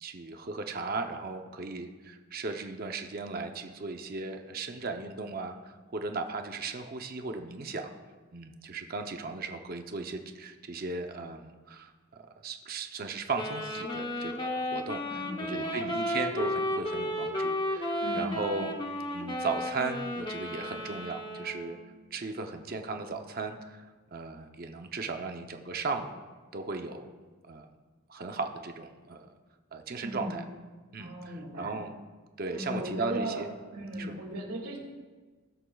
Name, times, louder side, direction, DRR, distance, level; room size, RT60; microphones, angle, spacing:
voice 1, 0.0-7.9 8.3-15.2 15.5-18.7 19.1-21.8 22.1-23.8 24.1-26.1 26.5-27.1 27.5-27.7 28.1-29.3 29.7-30.4 30.9-31.9 32.4-33.5 33.9-34.1, right 3 dB, 40° right, 5 dB, 0.6 m, -36 dB
Wind instrument woodwind instrument, 13.3-21.8, left 1 dB, 20° left, 0.9 m, -33 dB
voice 2, 15.1-15.8 18.0-18.5 30.0-30.4 31.0-31.8 32.5-33.4 33.7-34.8, right 1 dB, 90° right, 0 dB, 2.3 m, -37 dB
19.5 x 8.0 x 2.3 m, 1.3 s
head